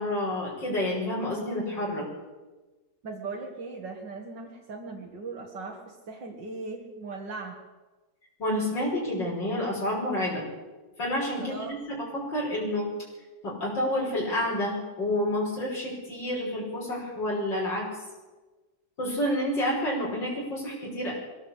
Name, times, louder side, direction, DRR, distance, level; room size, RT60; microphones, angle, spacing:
voice 1, 0.0-2.1 8.4-10.5 11.0-11.6 11.9-12.0 12.3-12.9 13.4-17.9 19.0-21.1, left 1 dB, 85° left, -5 dB, 6.5 m, -29 dB
voice 2, 3.0-7.6 11.4-11.8, right 3 dB, 75° right, -1 dB, 2.6 m, -38 dB
22.5 x 16.0 x 8.2 m, 1.2 s
omnidirectional pair, 1.9 m